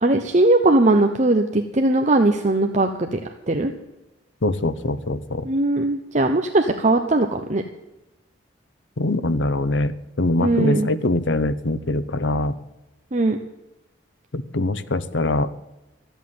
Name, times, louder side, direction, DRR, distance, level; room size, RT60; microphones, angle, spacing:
voice 1, 0.0-3.2 3.5-3.7 5.4-7.6 10.4-10.9 13.1-13.4, right 2 dB, 40° right, 5 dB, 0.9 m, -19 dB
voice 2, 4.4-5.5 9.0-12.5 14.3-15.5, left 2 dB, 85° left, 13 dB, 0.9 m, -23 dB
14.0 x 8.2 x 9.3 m, 1.0 s
head